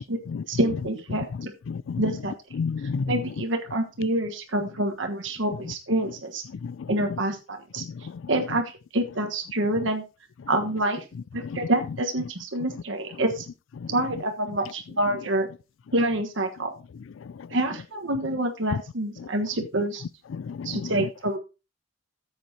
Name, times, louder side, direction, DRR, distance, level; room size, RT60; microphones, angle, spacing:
voice 1, 0.5-1.5 2.0-2.3 3.1-6.4 6.9-7.8 8.3-10.0 10.5-11.0 11.3-13.5 13.9-15.5 15.9-16.7 17.5-20.0 20.6-21.4, right 1 dB, 75° right, 1.4 m, -27 dB
voice 2, 1.7-2.0 2.6-3.1 6.6-6.7 11.4-11.6 20.3-20.9, left 5 dB, 85° left, 0.4 m, -30 dB
13.5 x 8.0 x 2.8 m
head